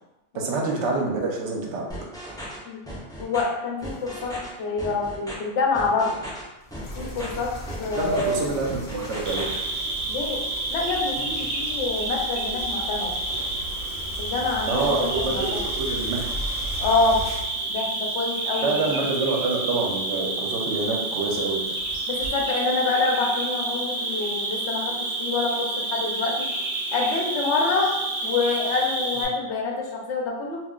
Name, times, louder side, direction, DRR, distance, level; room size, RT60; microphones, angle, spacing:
voice 1, 0.3-1.9 7.9-9.5 14.7-16.3 18.6-21.6, right 3 dB, 75° right, -1 dB, 0.9 m, -26 dB
sound 1, 1.9-2.6 2.9-3.4 3.8-4.5 4.8-5.3 5.7-6.4 6.7-7.3 7.7-8.3 8.6-9.5, equal, 5° left, 0.4 m, -37 dB
voice 2, 3.2-4.3 4.6-6.1 7.0-7.5 7.8-8.5 10.1-10.4 10.7-13.1 14.2-15.7 16.8-17.2 17.7-19.0 22.1-26.5 26.9-27.9 28.2-30.6, left 3 dB, 75° left, -1 dB, 0.9 m, -26 dB
sound 2, 3.8-4.4 6.6-22.3, equal, 50° left, 0.6 m, -39 dB
Cricket, 9.3-29.3, right 2 dB, 55° right, 0.9 m, -29 dB
2.4 x 2.1 x 3.6 m, 0.97 s
omnidirectional pair, 1.2 m